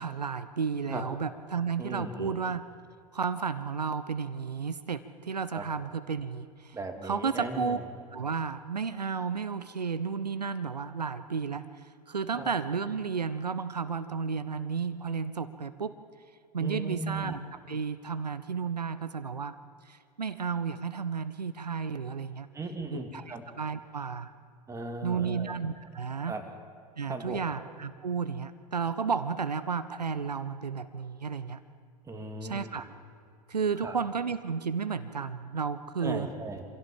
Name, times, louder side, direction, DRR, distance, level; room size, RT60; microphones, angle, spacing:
voice 1, 0.0-2.6 3.1-6.8 7.0-7.8 8.1-16.0 16.5-19.6 19.8-22.5 22.9-24.3 25.0-26.4 27.0-31.6 32.4-32.9 33.5-36.3, right 5 dB, 85° right, 13 dB, 0.8 m, -32 dB
voice 2, 1.8-2.4 5.5-5.7 6.7-7.8 12.4-12.5 16.6-17.3 22.5-23.4 24.7-25.5 26.3-26.4 27.1-27.4 32.1-32.8 33.8-34.0 36.0-36.6, right 3 dB, 15° right, 4 dB, 2.6 m, -37 dB
25.0 x 16.0 x 7.5 m, 2.3 s
figure-of-eight pair, 90°, 20 cm